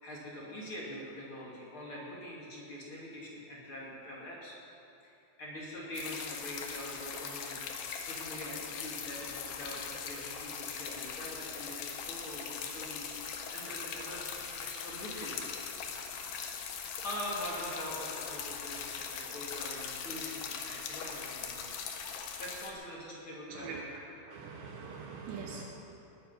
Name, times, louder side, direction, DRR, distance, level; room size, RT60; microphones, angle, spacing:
voice 1, 0.0-4.6 5.0-15.5 16.6-22.0 22.4-23.8, left 1 dB, 40° left, -5 dB, 2.4 m, -44 dB
sound 1, 5.9-22.7, left 6 dB, 70° left, 2.2 m, -40 dB
voice 2, 23.5-23.9 24.3-25.6, right 5 dB, 75° right, 0 dB, 3.1 m, -43 dB
19.5 x 9.4 x 5.6 m, 2.8 s
omnidirectional pair, 5.1 m